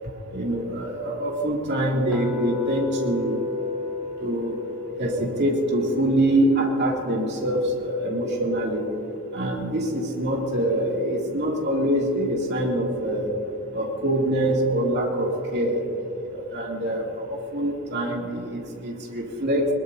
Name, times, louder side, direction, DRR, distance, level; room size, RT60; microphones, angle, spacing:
voice 1, 0.3-3.4 4.2-4.5 5.0-8.8 9.3-13.3 13.7-15.8 16.3-19.7, right 1 dB, 50° right, -2 dB, 2.5 m, -24 dB
sound 1, 2.1-8.2, left 3 dB, 5° left, 2.2 m, -34 dB
21.0 x 21.0 x 2.7 m, 2.8 s
head